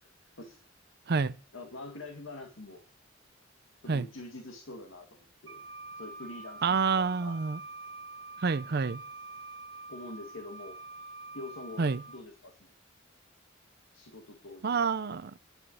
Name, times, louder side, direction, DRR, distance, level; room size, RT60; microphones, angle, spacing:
voice 1, 1.5-2.8 3.8-5.6 6.0-7.4 9.9-10.8 11.3-12.7 13.9-14.7, left 2 dB, 75° left, 2.1 m, -45 dB
Wind instrument woodwind instrument, 5.5-12.2, right 3 dB, 80° right, 2.8 m, -46 dB
voice 2, 6.6-7.6 8.4-9.0 11.8-12.0 14.6-15.3, right 5 dB, 50° right, 0.5 m, -28 dB
11.0 x 7.1 x 7.7 m
head